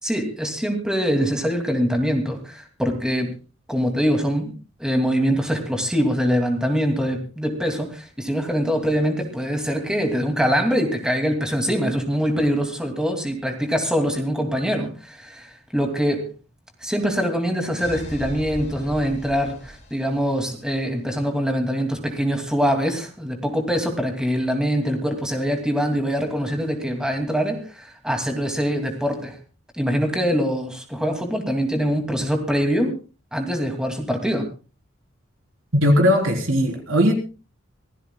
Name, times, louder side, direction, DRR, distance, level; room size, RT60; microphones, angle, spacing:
voice 1, 0.0-3.3 3.7-4.5 4.8-16.3 16.8-29.4 29.7-33.0 33.3-34.5, equal, 5° right, 4 dB, 2.5 m, -23 dB
sound 1, 17.8-20.7, equal, 35° left, 5.5 m, -38 dB
voice 2, 35.8-37.1, equal, 90° right, 2 dB, 3.9 m, -18 dB
25.0 x 16.0 x 2.3 m, 0.34 s
head